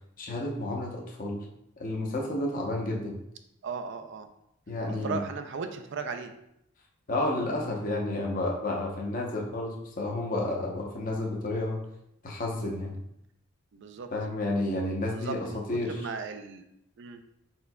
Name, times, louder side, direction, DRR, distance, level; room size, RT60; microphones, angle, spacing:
voice 1, 0.2-1.5 1.8-3.1 4.7-5.2 7.1-11.8 12.2-13.0 14.1-15.9, left 2 dB, 40° left, -1 dB, 0.7 m, -31 dB
voice 2, 3.6-4.3 4.9-6.3 13.7-14.1 15.1-16.6 17.0-17.2, right 5 dB, 60° right, 7 dB, 0.4 m, -37 dB
4.5 x 4.4 x 2.2 m, 0.78 s
head